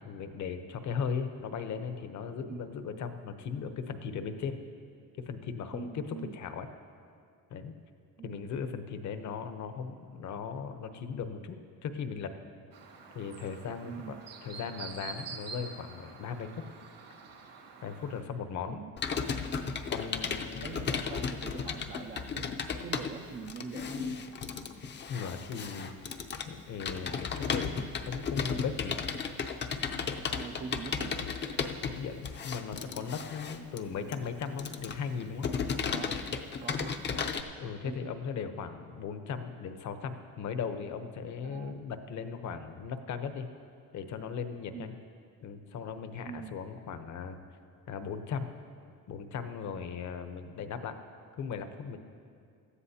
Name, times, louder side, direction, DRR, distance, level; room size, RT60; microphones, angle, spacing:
voice 1, 0.0-4.6 5.2-6.7 7.5-7.7 8.2-12.3 13.1-16.7 17.8-18.8 19.9-21.0 25.1-26.1 26.5-29.0 31.8-35.5 37.6-43.5 43.9-44.9 45.4-47.4 47.9-48.5 49.1-51.0 51.4-52.0, left 6 dB, 55° left, 8 dB, 0.9 m, -38 dB
voice 2, 5.7-6.4 8.2-8.4 13.9-14.2 18.7-18.9 20.6-22.5 22.8-24.2 30.3-31.2 33.6-33.7 35.9-36.2 36.6-37.0 37.8-38.2 41.4-41.7 44.7-44.9 46.3-46.6, right 6 dB, 30° right, 4 dB, 0.4 m, -43 dB
Chirp tweet, 12.7-18.2, right 5 dB, 70° right, 1.8 m, -47 dB
Computer keyboard, 19.0-37.4, left 6 dB, 30° left, 0.6 m, -35 dB
18.0 x 13.0 x 2.8 m, 2.3 s
cardioid pair, 145°, 35 cm